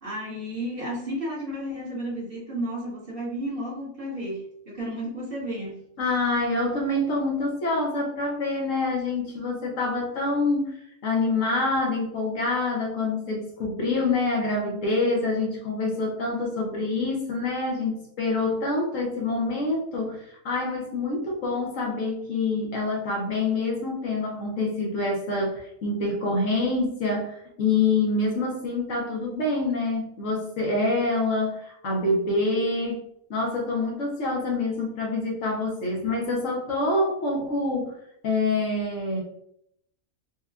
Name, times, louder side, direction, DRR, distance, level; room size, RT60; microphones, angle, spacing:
voice 1, 0.0-5.8, equal, 40° right, -8 dB, 1.5 m, -32 dB
voice 2, 6.0-10.7 11.0-33.0 33.3-37.9 38.2-39.2, left 2 dB, 65° left, -1 dB, 1.1 m, -26 dB
4.3 x 2.3 x 2.3 m, 0.73 s
omnidirectional pair, 1.5 m